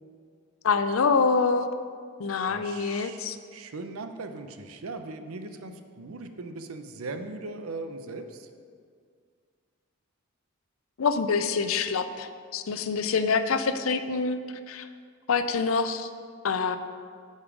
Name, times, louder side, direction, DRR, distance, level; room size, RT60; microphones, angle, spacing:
voice 1, 0.6-1.7 2.2-3.4 11.0-14.4 14.7-14.9 15.3-16.1 16.4-16.8, left 5 dB, 80° left, 10 dB, 0.5 m, -26 dB
voice 2, 2.5-8.5, right 3 dB, 90° right, 7 dB, 0.7 m, -39 dB
9.7 x 5.4 x 5.0 m, 2.1 s
head